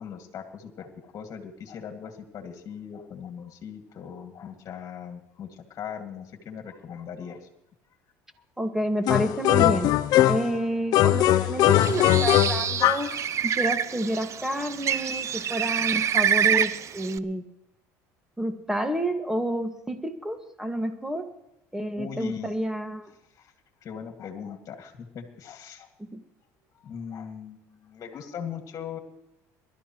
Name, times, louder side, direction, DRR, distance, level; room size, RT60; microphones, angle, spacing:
voice 1, 0.0-7.5 8.4-8.5 22.0-22.6 23.3-23.5 23.8-25.9 26.7-29.0, left 7 dB, 45° left, 4 dB, 2.2 m, -39 dB
voice 2, 8.6-9.9 10.3-13.1 13.4-17.5 18.4-21.3 21.7-23.1 26.0-26.2, right 1 dB, 5° right, 6 dB, 1.9 m, -29 dB
sound 1, 9.1-10.6 10.9-13.1, left 14 dB, 65° left, 0.7 m, -20 dB
Bird, 11.7-17.2, right 9 dB, 45° right, 0.6 m, -27 dB
22.5 x 12.5 x 3.1 m, 0.85 s
supercardioid pair, 105°, 7 cm